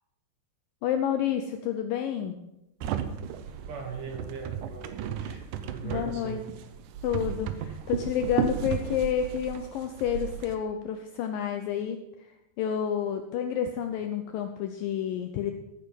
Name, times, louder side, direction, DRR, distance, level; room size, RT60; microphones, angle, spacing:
voice 1, 0.8-2.4 5.8-6.4 7.0-12.3 12.6-15.5, left 8 dB, 80° left, 7 dB, 2.1 m, -29 dB
sound 1, 2.8-10.6, right 8 dB, 90° right, 1.7 m, -34 dB
voice 2, 3.4-6.4, right 5 dB, 60° right, 3 dB, 2.7 m, -40 dB
14.0 x 9.3 x 5.3 m, 0.88 s
omnidirectional pair, 4.7 m